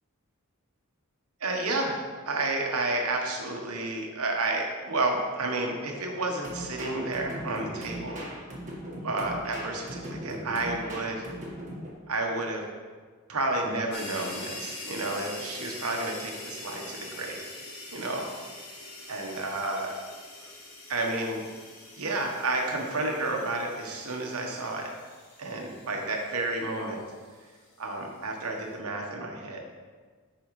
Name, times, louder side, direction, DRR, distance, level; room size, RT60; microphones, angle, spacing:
voice 1, 1.4-8.2 8.9-11.2 12.1-12.6 13.3-17.4 17.9-18.3 19.1-19.9 20.9-21.4 22.0-24.9 25.4-27.0 27.8-29.6, right 2 dB, 75° right, 1 dB, 1.2 m, -31 dB
sound 1, 6.4-11.9, right 1 dB, 35° right, 1.5 m, -39 dB
sound 2, 13.9-27.5, left 2 dB, 85° left, 1.6 m, -44 dB
8.8 x 5.5 x 3.2 m, 1.6 s
head